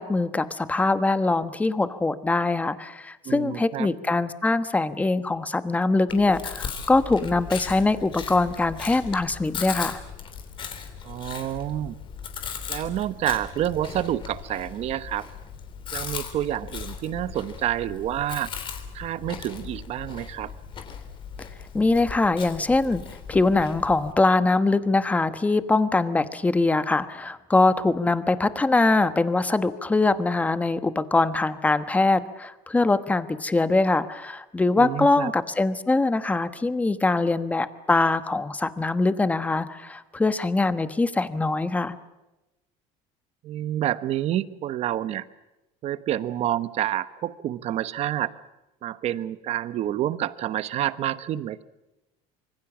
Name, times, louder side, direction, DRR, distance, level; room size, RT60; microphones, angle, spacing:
voice 1, 0.0-10.0 21.7-42.0, left 3 dB, 10° left, 12 dB, 1.2 m, -23 dB
voice 2, 3.2-3.9 11.0-11.9 12.7-15.3 15.9-18.5 18.9-20.5 22.9-23.0 34.8-35.3 43.4-45.3 45.8-48.3 48.8-51.6, right 12 dB, 45° right, 14 dB, 1.1 m, -28 dB
Chewing mastication, 6.1-24.1, left 6 dB, 35° left, 3.4 m, -38 dB
26.0 x 24.0 x 7.3 m, 1.0 s
cardioid pair, 145°, 15 cm